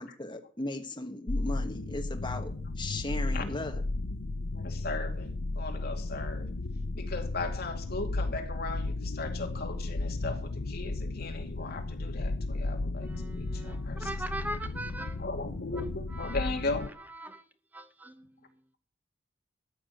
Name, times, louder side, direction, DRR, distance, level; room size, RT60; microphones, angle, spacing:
voice 1, 0.0-3.8, left 2 dB, 25° left, 1.4 m, -37 dB
sound 1, 1.3-16.9, left 2 dB, 80° left, 0.7 m, -34 dB
voice 2, 4.5-6.5 6.9-14.1 15.2-16.9, left 3 dB, 55° left, 2.4 m, -37 dB
voice 3, 13.0-15.2 15.7-16.5 16.8-17.4 17.7-18.6, right 1 dB, 10° right, 0.8 m, -41 dB
14.0 x 6.1 x 9.3 m
head